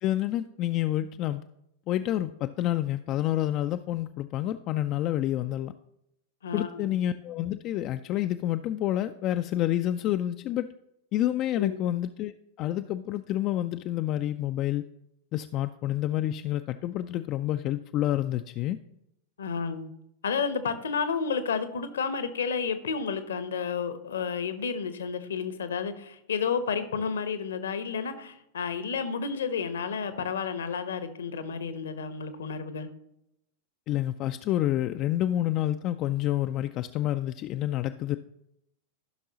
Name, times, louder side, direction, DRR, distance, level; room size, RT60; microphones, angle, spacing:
voice 1, 0.0-1.4 1.9-5.7 6.5-10.7 11.1-12.3 12.6-14.8 15.3-18.8 33.9-38.2, left 13 dB, 35° left, 9 dB, 0.3 m, -28 dB
voice 2, 6.4-6.9 11.6-11.8 19.4-19.9 20.2-32.9, left 6 dB, 65° left, 11 dB, 0.8 m, -31 dB
14.5 x 5.9 x 2.9 m, 0.79 s
figure-of-eight pair, 90°, 0 cm